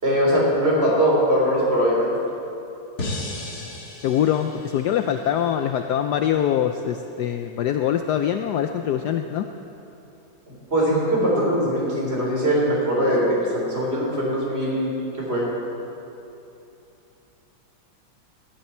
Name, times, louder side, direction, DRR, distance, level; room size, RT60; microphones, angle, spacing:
voice 1, 0.0-2.1 10.7-15.5, equal, 30° right, -4 dB, 3.8 m, -21 dB
sound 1, 3.0-6.1, left 2 dB, 55° left, 2.4 m, -35 dB
voice 2, 4.0-9.5, left 10 dB, 70° left, 7 dB, 1.0 m, -23 dB
19.0 x 12.5 x 4.4 m, 2.9 s
omnidirectional pair, 2.1 m